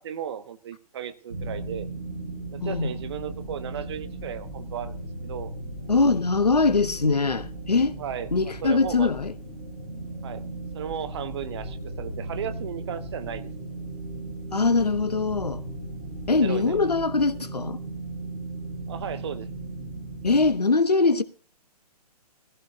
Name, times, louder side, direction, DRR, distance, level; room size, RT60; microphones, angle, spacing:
voice 1, 0.0-1.9 2.5-4.9 5.2-5.5 8.0-8.3 8.6-9.1 10.2-10.4 10.7-13.5 16.4-16.9 18.9-19.5, right 9 dB, 40° right, 1.1 m, -35 dB
sound 1, 1.3-20.5, right 2 dB, 65° right, 5.8 m, -36 dB
voice 2, 2.6-2.9 5.9-7.9 8.3-9.3 14.5-15.6 16.3-17.8 20.2-21.2, left 3 dB, 75° left, 1.1 m, -22 dB
18.0 x 15.5 x 2.7 m
figure-of-eight pair, 125°, 20 cm